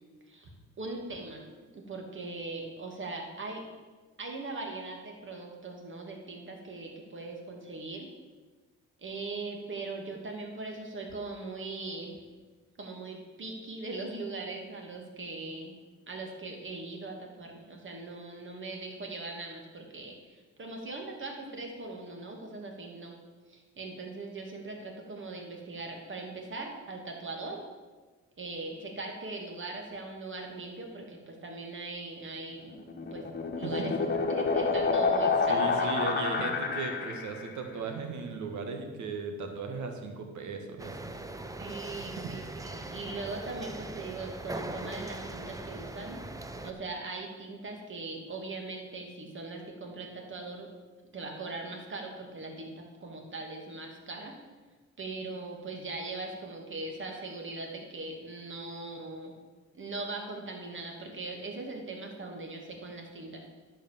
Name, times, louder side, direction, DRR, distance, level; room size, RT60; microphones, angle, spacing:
voice 1, 0.8-1.4 1.7-3.6 4.2-8.1 9.0-12.1 12.8-15.8 16.1-23.1 23.5-27.6 28.4-32.8 33.1-35.9 41.6-46.2 46.6-50.7 51.1-54.4 55.0-59.3 59.7-63.4, right 3 dB, 40° right, 1 dB, 2.5 m, -40 dB
sound 1, 32.7-37.5, left 4 dB, 30° left, 1.5 m, -28 dB
voice 2, 35.5-41.1 42.0-42.3 42.8-43.0, right 4 dB, 75° right, 4 dB, 1.8 m, -37 dB
sound 2, 40.8-46.7, right 2 dB, 10° right, 0.8 m, -40 dB
11.0 x 5.3 x 7.4 m, 1.3 s
cardioid pair, 90°, 30 cm